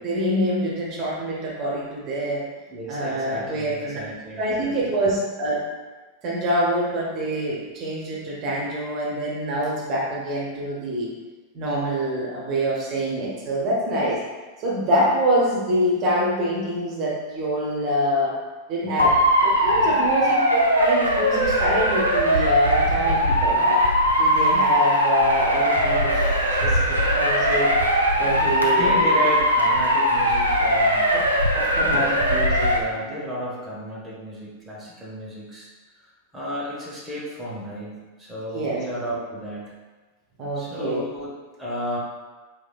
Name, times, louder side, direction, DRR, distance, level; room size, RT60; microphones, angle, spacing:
voice 1, 0.0-2.5 2.9-4.0 4.4-5.6 6.2-11.1 11.5-14.2 14.6-18.3 18.7-23.8 24.2-26.2 26.6-27.7 28.2-29.1 31.1-31.2 31.5-32.7 38.5-38.8 40.4-41.1, equal, 35° right, -4 dB, 0.9 m, -25 dB
voice 2, 2.7-4.9 18.8-19.1 19.7-20.1 28.4-31.1 31.9-32.1 32.7-35.7 36.3-39.7 40.6-42.0, equal, 5° right, -7 dB, 0.9 m, -33 dB
Motor vehicle (road) / Siren, 19.0-32.8, equal, 85° right, 0.4 m, -20 dB
4.1 x 3.1 x 2.3 m, 1.3 s
figure-of-eight pair, 90°, 0 cm